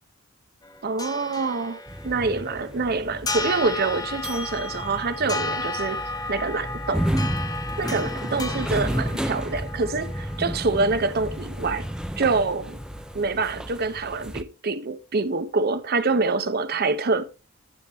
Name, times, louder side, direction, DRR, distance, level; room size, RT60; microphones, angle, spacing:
sound 1, 0.6-13.3, left 2 dB, 20° left, 1.0 m, -35 dB
voice 1, 0.8-6.0 6.3-7.2 7.8-11.9 12.2-12.8 13.1-17.2, right 3 dB, 45° right, 0.7 m, -26 dB
sound 2, 1.9-14.4, equal, 5° right, 0.4 m, -32 dB
10.5 x 7.1 x 2.9 m
head